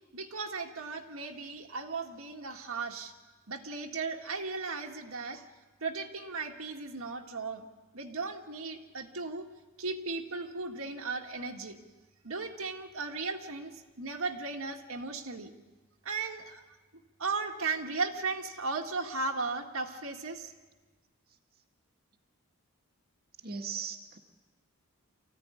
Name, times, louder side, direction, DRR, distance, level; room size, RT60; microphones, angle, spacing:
voice 1, 0.1-3.1 3.5-5.4 5.8-7.7 7.9-9.5 9.8-11.8 12.2-15.5 16.1-16.6 17.2-20.5, right 4 dB, 70° right, 2 dB, 1.9 m, -36 dB
voice 2, 23.4-24.2, right 6 dB, 45° right, 1 dB, 1.7 m, -38 dB
25.0 x 15.5 x 9.9 m, 1.2 s
head